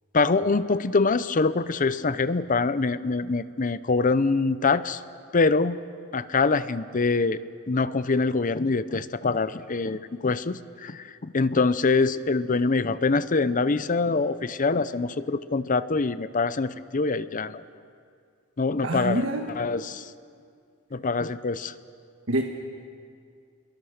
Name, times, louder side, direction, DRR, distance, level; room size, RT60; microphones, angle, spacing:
voice 1, 0.1-5.0 5.3-5.8 6.1-7.4 7.7-17.6 18.6-19.2 19.6-20.1 20.9-21.7, left 3 dB, 40° left, 15 dB, 0.7 m, -24 dB
voice 2, 18.8-19.5 22.3-22.4, right 1 dB, 75° right, 2 dB, 1.6 m, -26 dB
27.5 x 22.0 x 6.6 m, 2.3 s
head